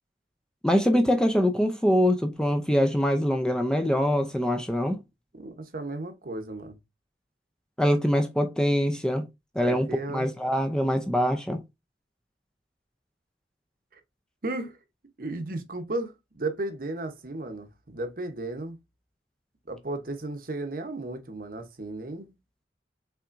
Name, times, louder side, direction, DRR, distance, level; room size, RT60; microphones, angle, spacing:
voice 1, 0.6-5.0 7.8-9.2 9.6-11.6, equal, 5° left, 0.5 m, -24 dB
voice 2, 5.3-6.8 9.6-10.3 13.9-14.0 14.4-14.8 15.2-18.8 19.7-22.4, right 2 dB, 50° right, 0.9 m, -34 dB
5.8 x 3.5 x 2.5 m
head